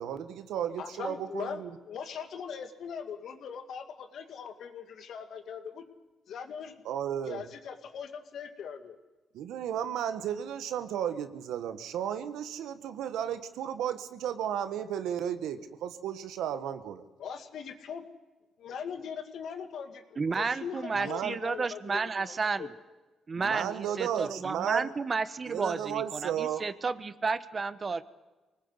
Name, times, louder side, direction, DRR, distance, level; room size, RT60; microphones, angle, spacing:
voice 1, 0.0-1.7 6.8-7.5 9.3-17.0 20.9-21.4 23.4-24.9 25.5-26.6, right 9 dB, 85° right, 10 dB, 1.5 m, -34 dB
voice 2, 0.8-5.8 6.3-6.8 7.2-9.0 17.2-18.1 18.6-22.7, left 7 dB, 65° left, 7 dB, 2.2 m, -40 dB
voice 3, 20.2-22.7 23.3-28.0, right 4 dB, 35° right, 14 dB, 1.1 m, -32 dB
23.5 x 19.0 x 8.1 m, 1.2 s
cardioid pair, 90°, 0 cm